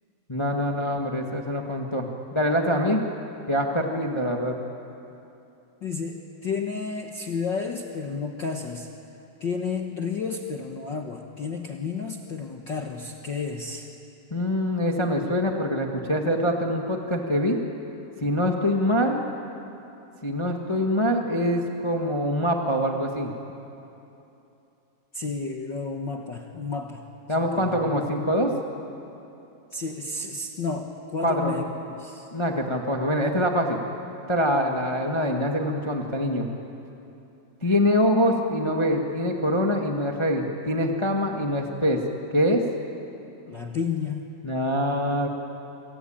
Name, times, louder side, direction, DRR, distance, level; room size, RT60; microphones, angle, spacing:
voice 1, 0.3-3.0 3.5-4.5 14.3-17.6 18.2-19.2 20.2-23.3 27.3-28.5 31.2-31.6 32.3-33.8 34.3-36.5 37.6-42.0 42.3-42.6 44.4-45.3, equal, 30° left, 2 dB, 0.5 m, -24 dB
voice 2, 5.8-8.9 9.4-13.9 25.1-27.0 27.5-27.9 29.7-31.7 32.0-32.3 43.4-44.2, left 5 dB, 60° left, 2 dB, 1.2 m, -31 dB
27.5 x 23.5 x 8.9 m, 2.8 s
omnidirectional pair, 3.9 m